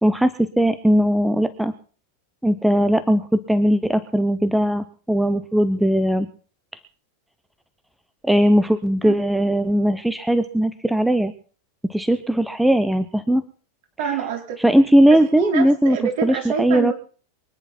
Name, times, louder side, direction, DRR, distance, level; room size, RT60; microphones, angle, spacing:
voice 1, 0.0-1.7 2.4-6.3 8.2-11.3 11.9-13.4 14.6-16.9, equal, 5° right, 12 dB, 0.8 m, -19 dB
voice 2, 14.0-14.6 15.4-16.9, right 8 dB, 50° right, 2 dB, 4.7 m, -26 dB
24.0 x 10.0 x 4.4 m, 0.42 s
figure-of-eight pair, 90°, 0 cm